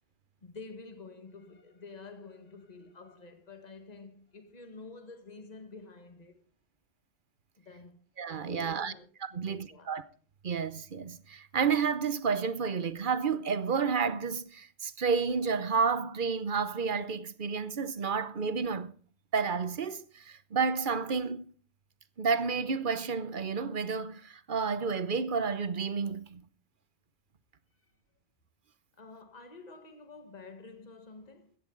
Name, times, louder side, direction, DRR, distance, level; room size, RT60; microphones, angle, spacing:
voice 1, 0.4-6.4 7.6-8.0 8.4-9.1 9.3-10.0 27.8-27.9 28.9-31.6, left 3 dB, 40° left, 1.7 m, -49 dB
voice 2, 8.2-8.9 9.2-10.0 10.4-18.9 19.3-21.5 22.2-26.4, right 5 dB, 50° right, 0.9 m, -31 dB
16.0 x 13.5 x 3.9 m
omnidirectional pair, 1.1 m